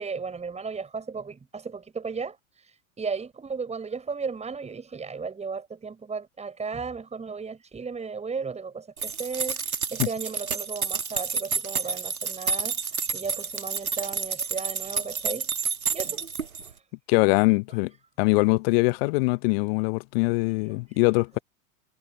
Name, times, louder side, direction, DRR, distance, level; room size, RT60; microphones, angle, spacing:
voice 1, 0.0-16.2 16.6-16.8 20.9-21.0, right 5 dB, 15° right, 6.3 m, -35 dB
sound 1, 9.0-16.7, right 5 dB, 85° right, 1.7 m, -30 dB
voice 2, 17.1-17.9 18.2-21.4, left 27 dB, 45° left, 0.7 m, -22 dB
figure-of-eight pair, 90°, 41 cm